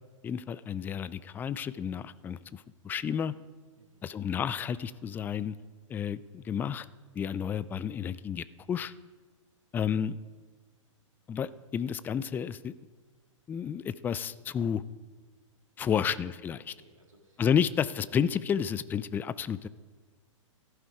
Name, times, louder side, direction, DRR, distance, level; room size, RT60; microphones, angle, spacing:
voice 1, 0.2-3.3 4.0-5.6 5.9-6.9 7.2-8.9 9.7-10.2 11.3-12.7 13.5-14.8 15.8-16.7 17.4-19.7, left 8 dB, 10° left, 17 dB, 0.3 m, -31 dB
voice 2, 3.7-4.2 15.8-16.0 16.5-17.4, right 2 dB, 85° right, 1 dB, 3.3 m, -62 dB
14.5 x 11.5 x 4.7 m, 1.4 s
figure-of-eight pair, 115°, 17 cm